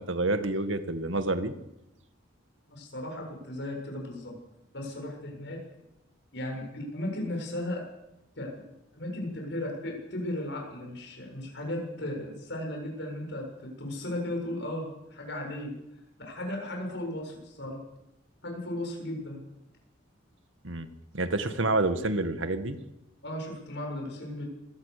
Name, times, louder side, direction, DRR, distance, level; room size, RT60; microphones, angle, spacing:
voice 1, 0.0-1.5 20.6-20.9 21.1-22.8, right 2 dB, 80° right, 9 dB, 2.0 m, -28 dB
voice 2, 2.7-4.4 4.7-5.6 6.3-7.8 8.4-8.5 8.9-15.7 16.2-17.8 18.4-19.4 23.2-24.4, left 1 dB, 65° left, 1 dB, 7.4 m, -36 dB
26.0 x 17.5 x 6.9 m, 0.87 s
head